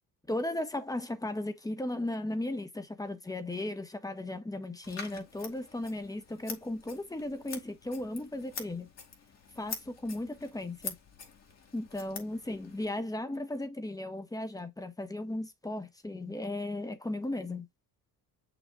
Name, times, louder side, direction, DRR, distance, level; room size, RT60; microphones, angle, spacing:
voice 1, 0.3-8.9 9.5-11.0 11.7-17.7, left 1 dB, 10° left, 1.3 m, -36 dB
Scissors, 4.8-12.9, left 6 dB, 50° left, 2.5 m, -46 dB
6.9 x 6.3 x 2.4 m
cardioid pair, 120°, 33 cm